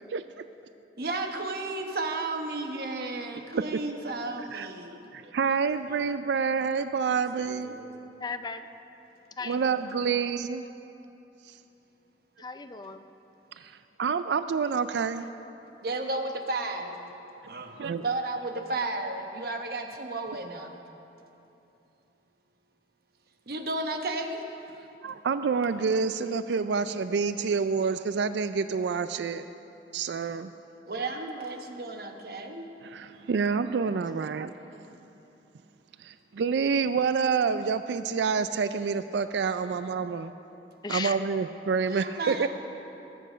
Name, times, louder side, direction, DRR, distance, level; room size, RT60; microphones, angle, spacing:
voice 1, 1.0-6.3 7.3-8.0 10.0-10.1 15.8-17.2 17.5-17.8 18.0-20.8 23.5-24.4 30.9-32.7 41.9-42.5, right 2 dB, 60° right, 4 dB, 1.1 m, -34 dB
voice 2, 5.1-7.7 9.5-10.6 13.6-13.7 14.0-15.2 17.8-18.0 25.0-29.5 29.9-30.5 32.9-34.5 36.0-40.3 40.9-42.5, right 5 dB, 80° right, 11 dB, 0.4 m, -28 dB
voice 3, 8.2-8.8 9.4-9.8 12.4-13.0 40.8-41.2, left 4 dB, 25° left, 9 dB, 0.4 m, -36 dB
19.5 x 7.8 x 5.1 m, 2.9 s
head